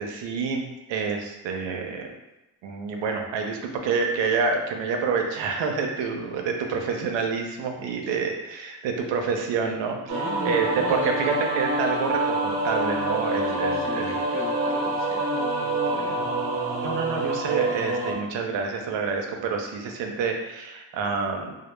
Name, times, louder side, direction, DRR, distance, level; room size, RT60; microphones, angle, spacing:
voice 1, 0.0-2.1 2.6-14.2 16.8-21.6, right 5 dB, 85° right, 3 dB, 0.5 m, -28 dB
voice 2, 10.1-11.1 13.5-16.2 16.5-16.7, left 3 dB, 30° left, -2 dB, 0.5 m, -37 dB
sound 1, 10.1-18.1, right 2 dB, 55° right, 0.7 m, -26 dB
2.0 x 2.0 x 3.0 m, 0.96 s
cardioid pair, 75°, 43 cm